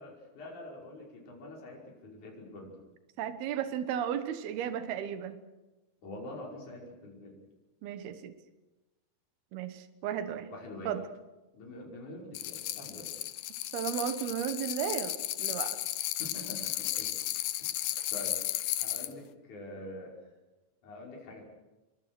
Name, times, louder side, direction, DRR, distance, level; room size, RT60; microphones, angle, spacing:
voice 1, 0.0-2.8 6.0-7.3 10.5-11.0 11.5-13.1 16.2-17.3 17.6-18.4 18.8-20.2 20.8-21.4, left 1 dB, 50° left, -2 dB, 6.8 m, -45 dB
voice 2, 3.2-5.4 7.8-8.3 9.5-10.5 10.9-11.0 13.7-15.8, right 9 dB, 80° right, 9 dB, 3.3 m, -34 dB
sound 1, 12.3-19.1, left 14 dB, 75° left, 2.6 m, -34 dB
27.0 x 24.5 x 6.3 m, 1.1 s
omnidirectional pair, 4.4 m